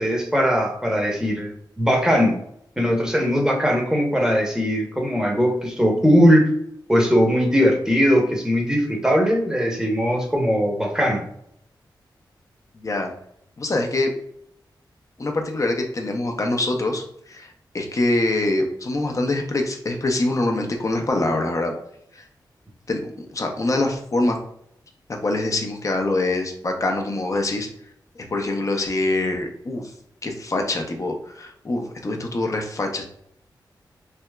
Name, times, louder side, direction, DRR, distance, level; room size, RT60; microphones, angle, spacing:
voice 1, 0.0-2.3 2.8-6.5 6.9-11.2, equal, 10° right, 0 dB, 0.8 m, -20 dB
voice 2, 12.7-13.1 13.6-14.1 15.2-17.0 17.3-21.7 22.1-22.2 22.9-24.4 25.2-27.7 28.2-29.8 30.2-33.1, left 2 dB, 40° left, 3 dB, 0.7 m, -24 dB
3.4 x 2.8 x 2.2 m, 0.71 s
cardioid pair, 65°, 8 cm